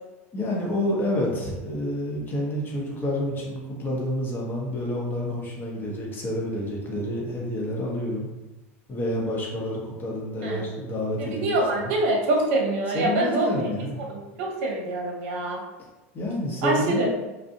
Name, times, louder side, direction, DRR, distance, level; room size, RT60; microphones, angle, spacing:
voice 1, 0.3-8.3 8.9-11.9 12.9-14.0 16.1-17.1, left 1 dB, 25° left, -2 dB, 0.8 m, -29 dB
voice 2, 11.2-13.7 14.1-15.6 16.6-17.1, right 2 dB, 65° right, -1 dB, 0.7 m, -25 dB
2.4 x 2.0 x 2.7 m, 1.1 s
hypercardioid pair, 105°, 7 cm